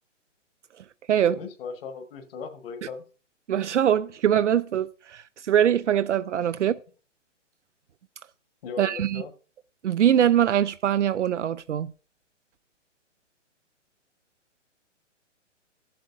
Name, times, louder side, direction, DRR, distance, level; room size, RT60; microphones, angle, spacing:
voice 1, 1.2-3.0 8.6-9.3, left 4 dB, 50° left, 1.4 m, -37 dB
voice 2, 3.5-6.7 8.8-9.2 9.8-11.9, right 10 dB, 70° right, 0.6 m, -22 dB
14.5 x 7.7 x 2.4 m
hypercardioid pair, 135°, 37 cm